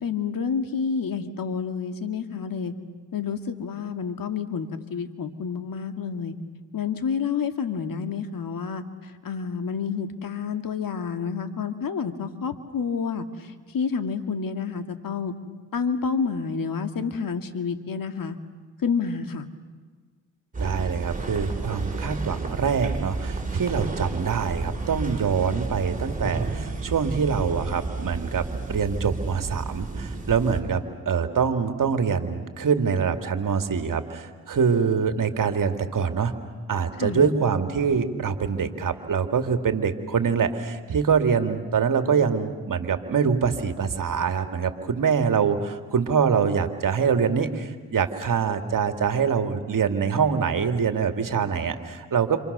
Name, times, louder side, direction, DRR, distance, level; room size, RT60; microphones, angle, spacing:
voice 1, 0.0-2.7 3.1-6.3 6.7-8.8 9.2-13.3 13.7-15.3 15.7-18.4 18.8-19.5 37.0-37.3, left 6 dB, 60° left, 8 dB, 2.2 m, -29 dB
sound 1, 20.5-30.6, right 3 dB, 20° right, 5.6 m, -31 dB
voice 2, 20.6-36.3 36.7-52.4, right 6 dB, 55° right, 7 dB, 2.5 m, -24 dB
29.5 x 27.0 x 6.9 m, 1.4 s
cardioid pair, 60°, 38 cm